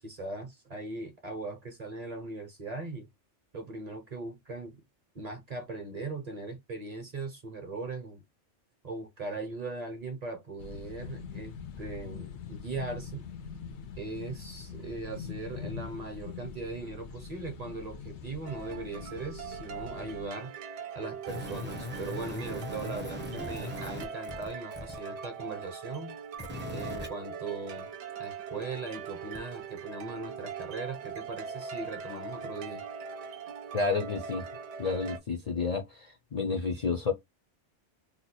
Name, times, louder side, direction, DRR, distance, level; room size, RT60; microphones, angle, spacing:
voice 1, 0.0-3.1 3.5-4.8 5.1-8.2 8.8-13.3 14.0-20.5 20.9-26.2 26.7-27.9 28.2-32.8, right 3 dB, 40° right, 0.7 m, -39 dB
sound 1, 10.6-20.3, left 6 dB, 75° left, 0.8 m, -43 dB
sound 2, 18.5-35.2, right 6 dB, 75° right, 0.9 m, -41 dB
sound 3, 21.3-25.0 26.3-27.1 29.3-29.4, left 1 dB, 15° right, 0.5 m, -39 dB
voice 2, 33.7-34.4 34.8-37.1, left 4 dB, 50° left, 0.5 m, -30 dB
2.8 x 2.2 x 4.1 m
omnidirectional pair, 1.2 m